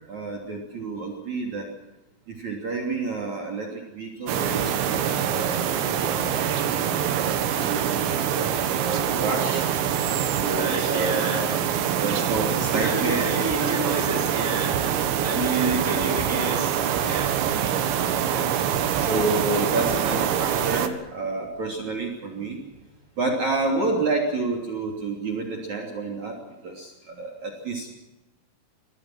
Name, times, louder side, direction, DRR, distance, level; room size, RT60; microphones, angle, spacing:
voice 1, 0.0-1.7 2.3-6.5 6.8-9.7 10.3-11.5 12.0-13.2 13.6-13.7 15.8-16.0 18.2-18.6 19.0-22.6 23.2-26.4 26.6-27.9, right 3 dB, 40° right, 3 dB, 4.0 m, -29 dB
sound 1, 4.3-20.9, right 9 dB, 75° right, 3.8 m, -25 dB
voice 2, 10.6-11.4 12.7-14.8 15.2-17.3, right 2 dB, 5° right, -1 dB, 4.8 m, -29 dB
26.5 x 21.5 x 6.1 m, 1.0 s
omnidirectional pair, 5.4 m